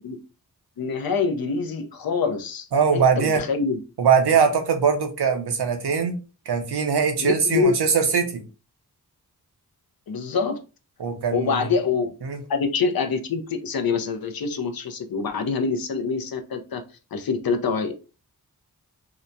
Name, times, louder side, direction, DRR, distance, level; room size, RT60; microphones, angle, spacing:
voice 1, 0.8-3.8 7.2-7.7 10.1-10.6 11.3-12.1 12.5-16.8 17.1-17.9, left 5 dB, 65° left, 0.5 m, -25 dB
voice 2, 2.7-3.4 4.0-6.2 6.5-8.4 11.0-11.7 12.2-12.4, right 6 dB, 80° right, 0.7 m, -21 dB
2.8 x 2.1 x 2.5 m
wide cardioid pair, 60°, 39 cm